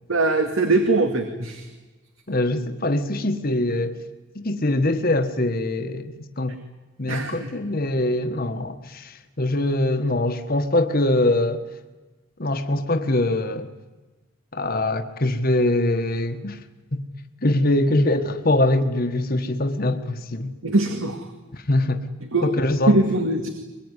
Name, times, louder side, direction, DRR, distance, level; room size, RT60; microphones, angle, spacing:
voice 1, 0.1-1.7 7.1-7.5 20.6-21.3 22.3-22.5 22.9-23.5, right 2 dB, 75° right, 2.2 m, -21 dB
voice 2, 2.3-4.0 4.3-6.6 7.0-11.6 12.4-13.7 14.5-16.6 16.9-17.1 17.4-20.5 21.5-22.0 22.4-23.0, left 1 dB, 45° left, 1.4 m, -23 dB
23.5 x 22.0 x 9.8 m
head